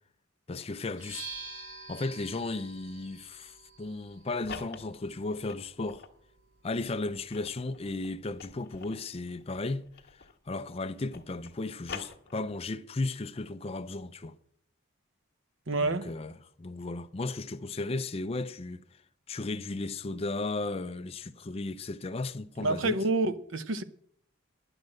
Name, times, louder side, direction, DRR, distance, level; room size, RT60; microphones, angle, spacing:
voice 1, 0.5-1.3 1.9-6.0 6.6-14.3 15.8-18.8 19.3-23.0, left 2 dB, 30° left, 0.4 m, -35 dB
sound 1, 0.9-8.6, right 3 dB, 85° right, 3.0 m, -49 dB
sound 2, 4.0-6.2 6.7-10.5 10.8-12.8, left 5 dB, 50° left, 1.3 m, -46 dB
voice 2, 15.7-16.1 22.6-23.8, right 2 dB, 60° right, 0.8 m, -28 dB
10.5 x 7.9 x 7.6 m
head